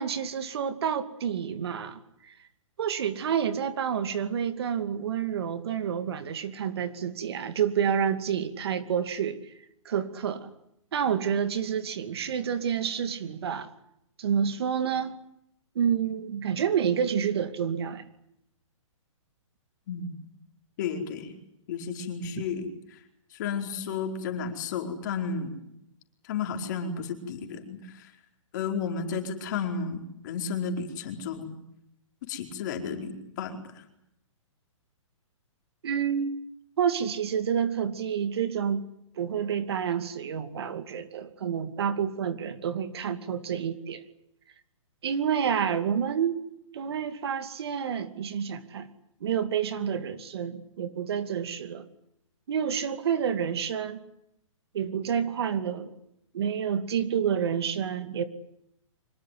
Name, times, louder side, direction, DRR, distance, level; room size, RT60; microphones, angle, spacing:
voice 1, 0.0-2.3 2.8-9.4 9.8-10.5 10.9-13.7 14.2-15.1 15.7-18.0 35.8-36.4 36.8-38.8 39.2-44.0 45.0-46.4 46.7-48.9 49.2-51.8 52.5-54.0 54.7-55.9 56.3-58.2, right 8 dB, 50° right, 11 dB, 2.5 m, -29 dB
voice 2, 20.8-21.3 21.7-23.0 23.3-25.6 26.2-28.1 28.5-31.5 32.2-33.8, left 5 dB, 35° left, 4 dB, 4.7 m, -33 dB
25.5 x 22.0 x 9.4 m, 0.78 s
hypercardioid pair, 170°, 17 cm